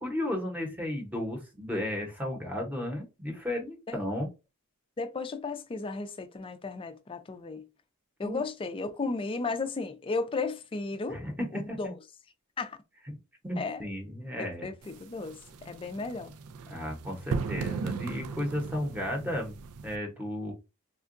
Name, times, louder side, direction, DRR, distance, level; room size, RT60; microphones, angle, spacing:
voice 1, 0.0-4.3 8.2-8.4 11.1-11.3 11.7-11.9 13.4-14.7 16.7-19.5 19.8-20.5, left 1 dB, 5° right, 0.8 m, -34 dB
voice 2, 5.0-7.7 8.2-11.2 11.5-11.9 12.6-12.8 13.6-13.8 14.4-15.4 15.6-16.3, left 3 dB, 25° left, 0.3 m, -34 dB
sound 1, 14.8-20.0, right 5 dB, 85° right, 0.4 m, -37 dB
3.6 x 2.2 x 2.5 m
head